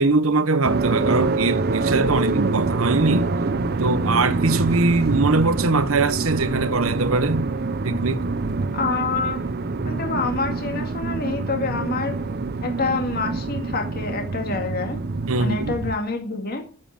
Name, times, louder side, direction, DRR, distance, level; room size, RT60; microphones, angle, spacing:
voice 1, 0.0-3.3 3.8-7.5 7.8-8.2 15.3-15.7, right 3 dB, 80° right, 1.0 m, -21 dB
sound 1, 0.6-16.0, right 3 dB, 50° right, 0.7 m, -25 dB
voice 2, 8.7-9.5 9.8-12.2 12.6-15.0 15.4-16.6, left 4 dB, 45° left, 2.1 m, -27 dB
9.6 x 7.8 x 9.0 m
head